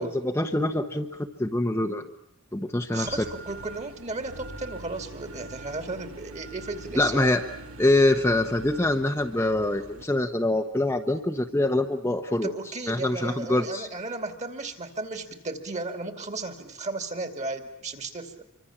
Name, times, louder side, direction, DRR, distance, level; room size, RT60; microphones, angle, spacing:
voice 1, 0.0-2.0 2.5-3.2 7.0-7.4 7.8-12.5 12.9-13.9, left 1 dB, 10° left, 5 dB, 1.0 m, -24 dB
voice 2, 2.9-7.3 12.4-18.3, right 3 dB, 35° right, 8 dB, 2.6 m, -34 dB
sound 1, 3.0-10.0, right 2 dB, 70° right, 2.3 m, -44 dB
27.0 x 24.5 x 7.3 m, 0.77 s
head